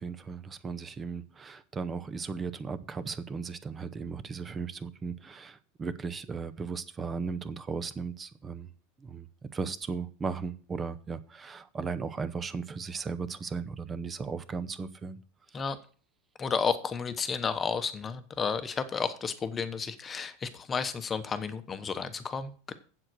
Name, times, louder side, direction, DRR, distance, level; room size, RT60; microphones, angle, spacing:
voice 1, 0.0-8.7 9.0-15.2 15.5-15.6, right 5 dB, 20° right, 0.7 m, -36 dB
voice 2, 16.4-22.7, left 5 dB, 20° left, 1.0 m, -32 dB
8.0 x 7.6 x 6.2 m
supercardioid pair, 140°, 0 cm